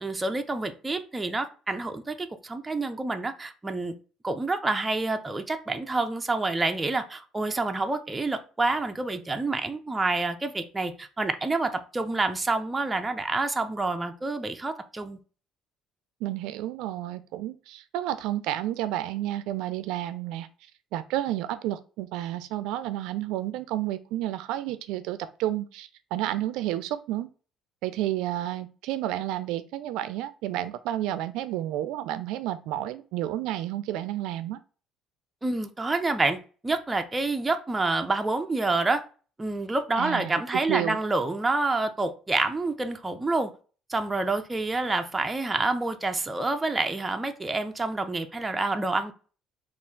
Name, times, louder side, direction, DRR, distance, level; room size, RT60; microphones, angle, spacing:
voice 1, 0.0-3.9 4.2-15.2 35.4-36.4 36.6-39.0 39.4-43.5 43.9-49.1, right 3 dB, 10° right, 6 dB, 0.3 m, -28 dB
voice 2, 16.2-20.5 20.9-27.3 27.8-34.6 40.0-40.4 40.7-41.0, right 13 dB, 85° right, 13 dB, 0.3 m, -31 dB
3.4 x 2.4 x 4.4 m, 0.37 s
cardioid pair, 170°, 0 cm